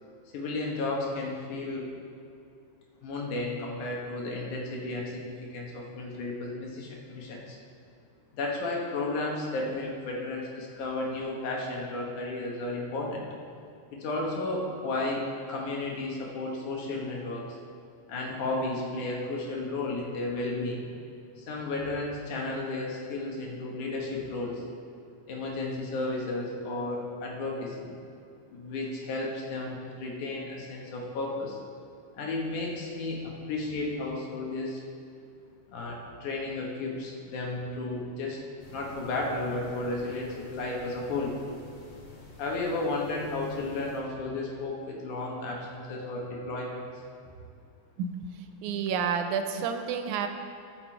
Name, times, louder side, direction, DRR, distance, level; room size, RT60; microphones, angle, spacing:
voice 1, 0.3-1.9 3.0-7.6 8.3-13.2 13.9-17.6 18.1-20.9 21.4-24.6 25.3-27.9 28.5-31.6 32.1-34.8 35.7-38.4 38.7-41.4 42.4-46.8, left 2 dB, 80° left, -2 dB, 2.9 m, -33 dB
sound 1, 38.6-44.0, left 2 dB, 55° left, 2.6 m, -50 dB
voice 2, 48.0-50.3, right 6 dB, 80° right, 7 dB, 2.0 m, -30 dB
15.5 x 5.9 x 4.6 m, 2.4 s
omnidirectional pair, 3.5 m